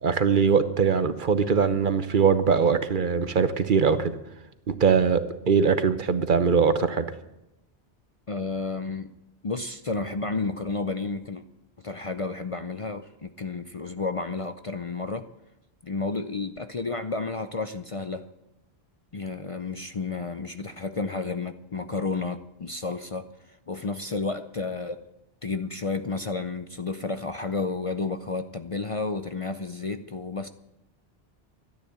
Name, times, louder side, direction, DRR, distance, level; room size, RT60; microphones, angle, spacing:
voice 1, 0.0-4.2 4.7-7.0, right 6 dB, 55° right, 12 dB, 1.0 m, -22 dB
voice 2, 8.3-9.1 9.4-11.4 11.8-15.2 15.8-18.3 19.1-23.3 23.7-25.0 25.4-30.5, left 3 dB, 40° left, 9 dB, 0.6 m, -31 dB
12.5 x 10.5 x 8.7 m, 0.90 s
omnidirectional pair, 1.1 m